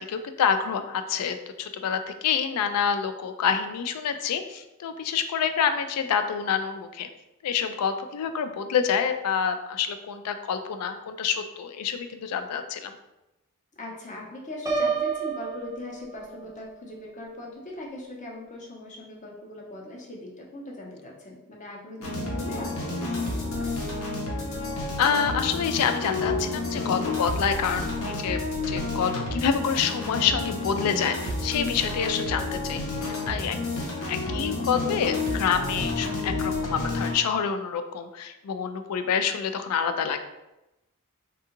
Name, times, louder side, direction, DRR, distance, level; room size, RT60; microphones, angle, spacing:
voice 1, 0.0-7.1 7.4-13.0 25.0-32.8 33.3-33.6 34.1-40.2, left 7 dB, 90° left, 9 dB, 0.3 m, -27 dB
voice 2, 13.7-23.9, left 1 dB, 35° left, -1 dB, 0.7 m, -40 dB
Piano, 14.7-16.6, right 5 dB, 15° right, 0.4 m, -29 dB
sound 1, 22.0-37.1, left 2 dB, 65° left, 0.8 m, -30 dB
3.6 x 2.3 x 2.9 m, 0.94 s
head